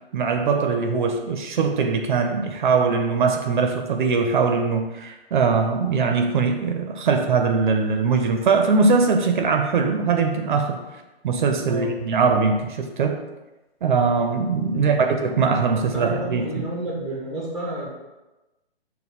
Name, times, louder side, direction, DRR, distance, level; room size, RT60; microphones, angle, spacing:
voice 1, 0.1-10.8 11.2-13.2 13.8-16.6, right 5 dB, 50° right, 5 dB, 0.5 m, -21 dB
voice 2, 14.7-15.2 15.8-17.9, right 1 dB, ahead, -3 dB, 0.6 m, -31 dB
5.2 x 2.2 x 4.2 m, 1.1 s
hypercardioid pair, 140°, 31 cm